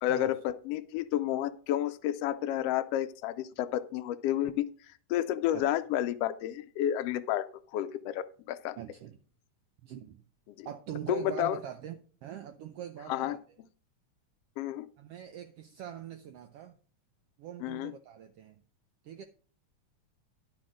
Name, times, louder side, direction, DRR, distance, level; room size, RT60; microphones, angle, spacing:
voice 1, 0.0-4.7 5.1-8.8 10.6-10.7 11.1-11.6 13.1-13.4 14.6-14.9 17.6-17.9, left 12 dB, 90° left, 1.3 m, -31 dB
voice 2, 8.8-9.2 9.8-10.2 10.6-13.4 15.0-16.8 17.4-18.6 19.0-19.2, right 10 dB, 80° right, 1.3 m, -43 dB
11.5 x 6.1 x 4.9 m
omnidirectional pair, 3.4 m